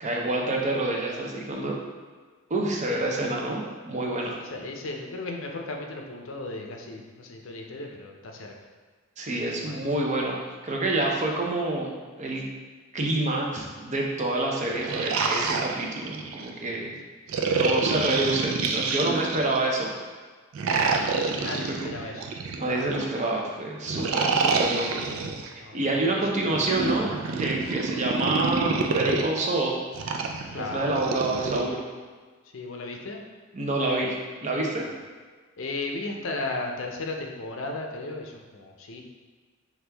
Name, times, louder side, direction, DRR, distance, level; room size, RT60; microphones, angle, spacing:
voice 1, 0.0-1.8 2.5-4.4 9.2-12.4 12.9-16.9 17.6-19.9 21.3-21.8 22.6-25.1 25.5-27.1 27.4-29.7 30.6-31.8 33.5-34.2 34.4-34.9, right 2 dB, 35° right, -1 dB, 0.6 m, -27 dB
voice 2, 4.4-8.5 9.6-9.8 16.6-16.9 20.7-22.2 25.6-26.5 30.5-31.0 32.5-33.2 34.8-34.9 35.6-39.0, left 2 dB, 70° left, 1 dB, 0.6 m, -36 dB
sound 1, 14.5-16.5 17.3-19.7 20.5-23.1 23.9-25.5 26.5-29.3 29.9-31.6, right 4 dB, 85° right, 0.4 m, -28 dB
6.0 x 2.3 x 3.4 m, 1.4 s
head